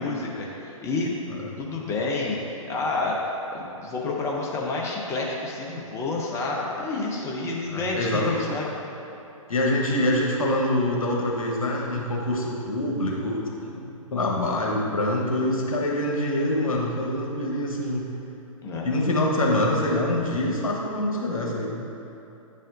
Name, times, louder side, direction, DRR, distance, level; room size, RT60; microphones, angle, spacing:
voice 1, 0.0-1.1 1.6-3.2 3.5-8.7 18.6-18.9, left 3 dB, 15° left, -3 dB, 0.7 m, -29 dB
voice 2, 7.7-8.4 9.5-13.8 14.1-18.0 18.8-21.7, left 1 dB, 75° left, -2 dB, 1.2 m, -25 dB
9.9 x 4.2 x 2.6 m, 2.9 s
hypercardioid pair, 120°, 18 cm